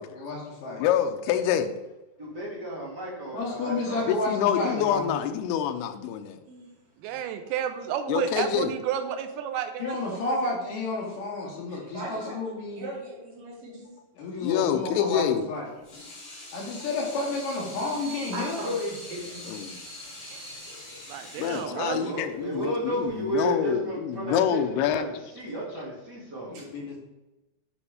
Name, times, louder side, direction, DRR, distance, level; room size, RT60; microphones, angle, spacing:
voice 1, 0.1-0.8 3.3-5.1 9.8-12.8 14.2-15.6 16.5-18.6 26.5-27.0, left 2 dB, 60° left, -2 dB, 3.5 m, -31 dB
voice 2, 0.8-1.8 4.1-6.4 8.1-8.7 14.4-15.5 19.5-19.8 21.4-25.1, left 9 dB, 80° left, 7 dB, 2.7 m, -26 dB
voice 3, 2.2-4.1 21.5-26.6, right 1 dB, 30° right, -5 dB, 2.5 m, -33 dB
voice 4, 7.0-10.5 21.1-22.1, right 9 dB, 85° right, 8 dB, 2.6 m, -31 dB
voice 5, 11.7-12.4 12.7-13.9 18.3-21.4, equal, 55° right, -5 dB, 4.5 m, -38 dB
Water tap faucet / Sink (filling or washing), 15.6-23.7, left 1 dB, 35° left, 3.4 m, -43 dB
10.0 x 5.3 x 4.9 m, 1.0 s
omnidirectional pair, 4.6 m